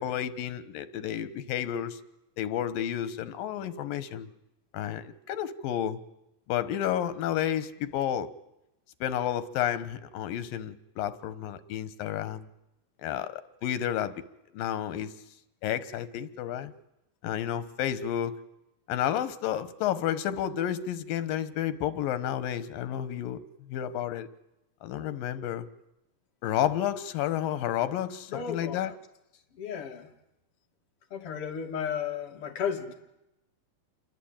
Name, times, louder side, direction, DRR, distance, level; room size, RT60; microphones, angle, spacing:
voice 1, 0.0-2.0 2.4-4.3 4.7-6.0 6.5-8.3 9.0-12.5 13.0-14.1 14.5-15.1 15.6-16.7 17.2-18.3 18.9-23.4 23.7-24.3 24.8-25.7 26.4-28.9, left 10 dB, 85° left, 13 dB, 2.9 m, -31 dB
voice 2, 28.3-28.9 29.5-30.1 31.1-32.9, left 7 dB, 45° left, 2 dB, 3.1 m, -34 dB
28.5 x 23.0 x 8.9 m, 0.90 s
omnidirectional pair, 4.0 m